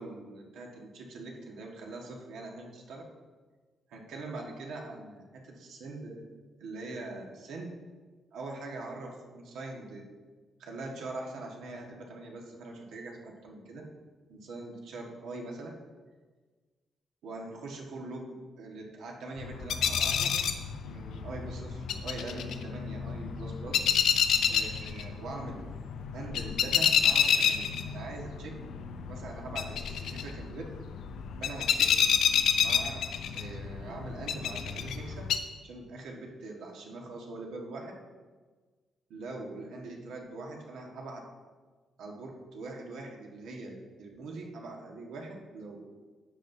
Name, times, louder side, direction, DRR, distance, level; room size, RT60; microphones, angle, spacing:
voice 1, 0.0-3.0 3.9-6.2 6.6-7.7 8.3-10.1 10.6-13.8 14.3-15.7 17.2-20.3 20.8-23.9 24.5-25.7 26.1-28.5 29.1-30.6 31.4-31.8 32.6-33.0 33.3-35.1 35.6-37.9 39.1-41.2 42.0-46.0, right 2 dB, 80° right, 0 dB, 1.5 m, -42 dB
sound 1, 19.4-35.4, left 7 dB, 75° left, 0.6 m, -29 dB
11.0 x 7.6 x 2.7 m, 1.4 s
cardioid pair, 170°, 0 cm